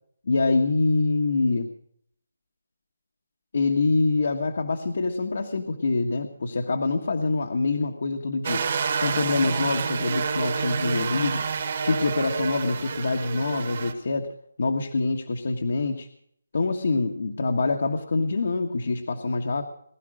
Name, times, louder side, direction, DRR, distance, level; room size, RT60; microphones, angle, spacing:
voice 1, 0.2-1.7 3.5-8.6 8.9-11.5 11.8-14.3 14.6-16.1 16.5-19.6, left 3 dB, 60° left, 2 dB, 1.5 m, -25 dB
sound 1, 8.4-13.9, right 6 dB, 40° right, 1.8 m, -28 dB
20.5 x 11.5 x 5.0 m, 0.67 s
hypercardioid pair, 170°, 0 cm